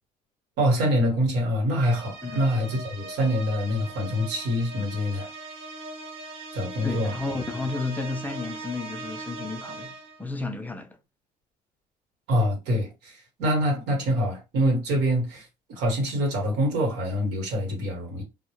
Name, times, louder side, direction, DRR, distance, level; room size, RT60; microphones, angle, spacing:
voice 1, 0.6-5.3 6.5-7.1 12.3-18.2, equal, 90° right, 1.1 m, -25 dB
sound 1, 1.8-10.3, right 2 dB, 65° right, 0.6 m, -39 dB
voice 2, 6.8-11.0, left 3 dB, 10° left, 0.4 m, -32 dB
2.1 x 2.0 x 3.0 m
cardioid pair, 110°, 17 cm